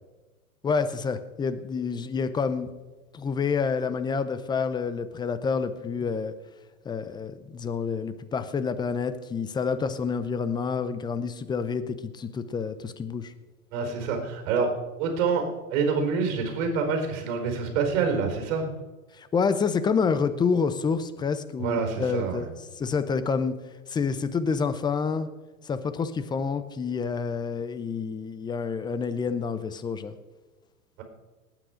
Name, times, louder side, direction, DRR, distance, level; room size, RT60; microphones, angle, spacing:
voice 1, 0.6-2.7 3.1-6.3 6.8-13.3 19.1-22.5 22.8-23.5 23.9-25.3 25.6-30.1, left 5 dB, 10° left, 12 dB, 0.6 m, -28 dB
voice 2, 13.7-14.7 15.0-15.4 15.7-18.7 21.6-22.5, right 5 dB, 50° right, 4 dB, 4.4 m, -26 dB
18.5 x 9.1 x 5.1 m, 1.2 s
hypercardioid pair, 120°, 44 cm